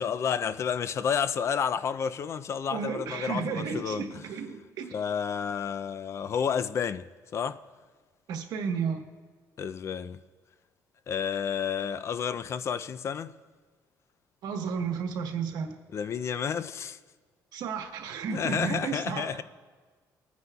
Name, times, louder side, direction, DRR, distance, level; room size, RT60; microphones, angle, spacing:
voice 1, 0.0-4.2 4.9-7.1 7.3-7.6 9.6-10.2 11.1-13.3 15.9-17.0 18.3-19.4, left 7 dB, 40° left, 0.3 m, -30 dB
voice 2, 2.7-4.9 8.3-9.0 14.4-15.7 17.5-19.4, right 6 dB, 70° right, 1.2 m, -33 dB
25.0 x 9.4 x 2.3 m
cardioid pair, 150°, 7 cm